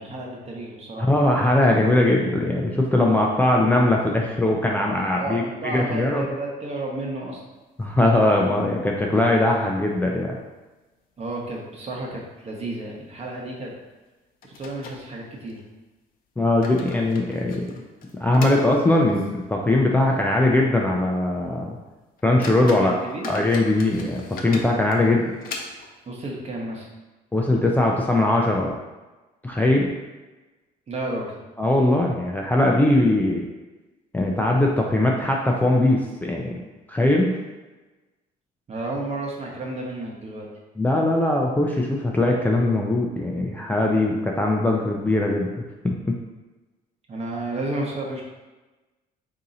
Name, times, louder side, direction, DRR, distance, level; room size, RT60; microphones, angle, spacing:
voice 1, 0.0-1.1 5.1-7.4 11.2-13.7 14.4-15.6 22.7-23.3 26.1-26.9 30.9-31.4 38.7-40.5 47.1-48.2, right 2 dB, 40° right, -1 dB, 1.0 m, -32 dB
voice 2, 1.0-6.2 7.8-10.4 16.4-17.6 18.2-21.8 22.2-22.9 23.3-25.2 27.3-28.7 29.4-29.9 31.6-33.5 34.1-36.6 36.9-37.4 40.8-45.5 45.8-46.2, left 1 dB, 10° left, -2 dB, 0.4 m, -20 dB
sound 1, 7.7-8.6 9.0-9.1 9.4-9.5 10.1-10.6 10.9-11.1 11.7-11.8 12.2-12.3 13.7-13.8 14.4-15.6 16.3-19.5 19.8-19.9 20.5-20.6 21.0-21.2 21.7-21.8 22.2-26.1, left 3 dB, 60° left, 0.7 m, -40 dB
3.7 x 2.8 x 4.0 m, 1.2 s
cardioid pair, 110°, 17 cm